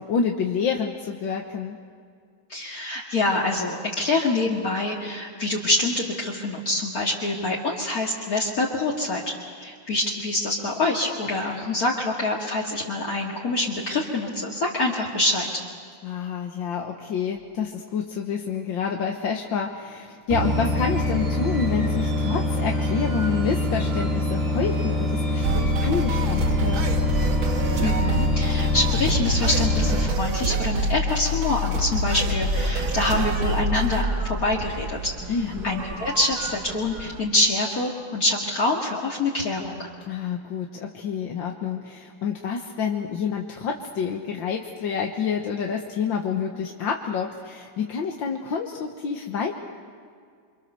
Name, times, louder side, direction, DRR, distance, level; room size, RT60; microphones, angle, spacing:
voice 1, 0.0-1.8 16.0-26.9 35.3-35.7 40.1-49.6, left 6 dB, 70° left, 1 dB, 2.0 m, -28 dB
voice 2, 2.5-9.3 9.6-15.5 27.8-35.1 35.6-39.9, left 2 dB, 45° left, -4 dB, 2.5 m, -25 dB
sound 1, 20.3-30.1, left 1 dB, 30° right, 2.2 m, -25 dB
sound 2, 25.4-34.0, equal, 85° right, 2.6 m, -25 dB
sound 3, 32.2-37.2, right 3 dB, 55° right, 2.1 m, -35 dB
29.0 x 25.0 x 6.9 m, 2.2 s
omnidirectional pair, 2.2 m